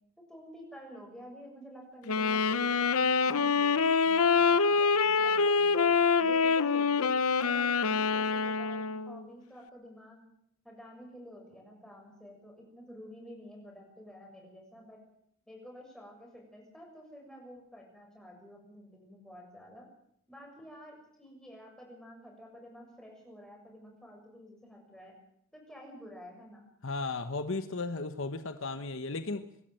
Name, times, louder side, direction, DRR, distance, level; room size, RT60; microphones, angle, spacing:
voice 1, 0.3-2.9 3.2-5.9 6.2-7.1 7.4-10.2 10.6-15.0 15.5-19.8 20.3-25.1 25.5-26.6, equal, 5° left, 0 dB, 6.8 m, -50 dB
Wind instrument woodwind instrument, 2.1-9.2, left 5 dB, 85° left, 0.9 m, -26 dB
voice 2, 26.8-29.4, left 3 dB, 60° left, 10 dB, 1.1 m, -35 dB
25.5 x 12.5 x 9.2 m, 0.73 s
head